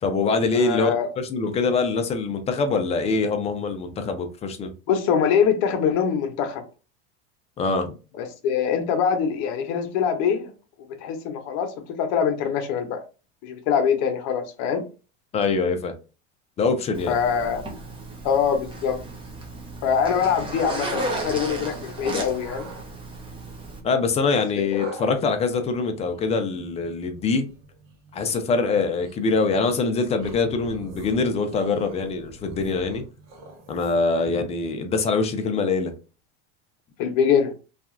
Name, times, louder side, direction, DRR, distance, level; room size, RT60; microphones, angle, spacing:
voice 1, 0.0-0.9 1.2-4.7 7.6-7.9 15.3-15.9 16.6-17.1 23.8-27.5 28.1-33.0 33.7-35.9, left 4 dB, 20° left, 0.3 m, -24 dB
voice 2, 0.5-1.1 4.9-6.6 8.2-10.5 11.0-13.0 13.4-14.8 17.1-17.6 18.2-19.0 19.8-22.7 24.7-24.9 34.2-34.3 37.0-37.5, left 7 dB, 55° left, 0.7 m, -23 dB
Zipper (clothing), 16.9-23.8, right 2 dB, 15° right, 0.7 m, -34 dB
sound 1, 20.2-21.9 22.3-22.9 24.7-34.2, right 2 dB, 50° right, 1.0 m, -44 dB
2.7 x 2.4 x 2.5 m
supercardioid pair, 130°, 33 cm